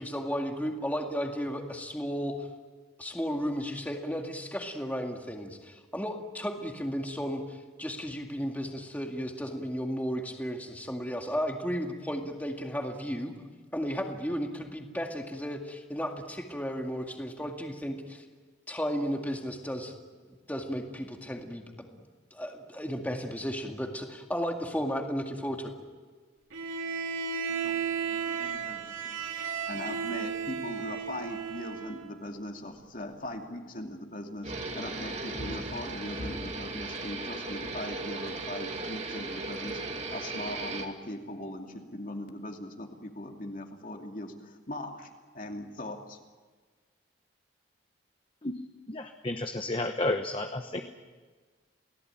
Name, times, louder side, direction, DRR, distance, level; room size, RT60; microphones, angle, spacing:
voice 1, 0.0-2.5 3.0-13.3 13.7-18.2 18.7-20.0 20.5-21.9 22.3-25.7, equal, 10° left, 2 dB, 2.0 m, -34 dB
Bowed string instrument, 26.5-32.1, right 6 dB, 90° right, 3.0 m, -34 dB
voice 2, 27.5-46.2, left 1 dB, 45° left, 3 dB, 2.7 m, -40 dB
sound 1, 34.4-40.9, right 3 dB, 35° right, 2.3 m, -36 dB
voice 3, 48.9-50.8, left 2 dB, 25° left, 5 dB, 1.0 m, -31 dB
29.0 x 18.0 x 9.0 m, 1.4 s
head